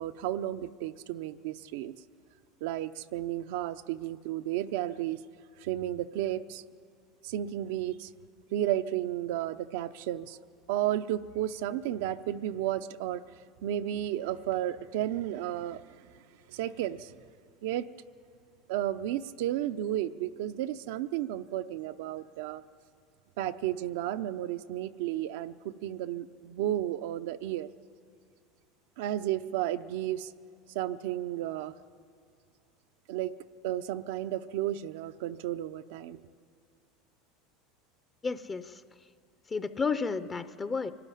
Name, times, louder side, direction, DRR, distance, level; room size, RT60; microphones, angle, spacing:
voice 1, 0.0-1.9 2.6-5.2 5.6-6.6 7.2-8.1 8.5-10.4 10.7-13.2 13.6-16.1 16.5-17.2 17.6-17.8 18.7-22.6 23.4-27.7 29.0-30.3 30.7-31.7 33.1-33.3 33.6-36.2, right 12 dB, 75° right, 10 dB, 0.6 m, -33 dB
voice 2, 38.2-38.8 39.5-40.9, left 5 dB, 20° left, 12 dB, 0.6 m, -32 dB
24.0 x 13.0 x 9.9 m, 2.2 s
supercardioid pair, 140°, 0 cm